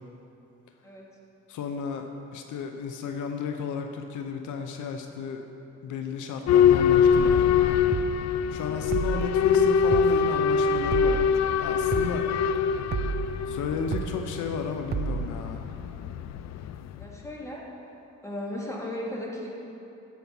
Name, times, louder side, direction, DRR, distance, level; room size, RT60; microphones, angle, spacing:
voice 1, 1.5-5.5 5.8-7.5 8.5-12.3 13.5-15.7, left 5 dB, 80° left, 5 dB, 0.8 m, -33 dB
Boat Water vehicle / Alarm, 6.5-17.1, left 7 dB, 60° left, 0.5 m, -24 dB
sound 1, 7.9-8.1 8.9-9.3 9.9-10.1 10.9-11.3 11.9-12.1 12.9-13.3 13.9-14.1 14.9-15.3, right 7 dB, 35° right, 0.5 m, -30 dB
voice 2, 17.0-17.6 18.2-19.5, left 1 dB, 10° left, -4 dB, 2.7 m, -36 dB
15.5 x 5.9 x 5.6 m, 2.9 s
cardioid pair, 90°, 30 cm